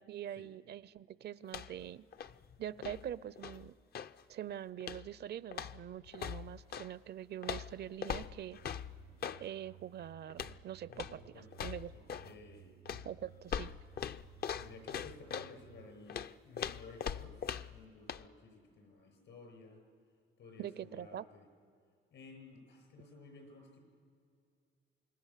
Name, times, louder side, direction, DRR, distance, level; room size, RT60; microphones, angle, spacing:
voice 1, 0.0-2.0 2.6-3.7 4.3-8.6 9.4-11.2 11.6-11.9 13.0-13.7 20.6-21.3, right 10 dB, 55° right, 19 dB, 0.5 m, -44 dB
sound 1, 1.4-4.2 4.8-5.2 5.5-6.9 7.4-9.4 10.3-10.6 10.9-11.2 11.5-12.3 12.9-15.5 16.1-17.8 18.1-18.2, left 8 dB, 55° left, 0.5 m, -41 dB
sound 2, 8.4-16.0, right 16 dB, 85° right, 0.8 m, -60 dB
voice 2, 10.9-11.6 11.9-12.7 14.5-19.8 20.4-21.5 22.1-23.8, left 3 dB, 75° left, 3 dB, 7.1 m, -55 dB
26.5 x 19.5 x 7.4 m, 2.4 s
cardioid pair, 90°, 20 cm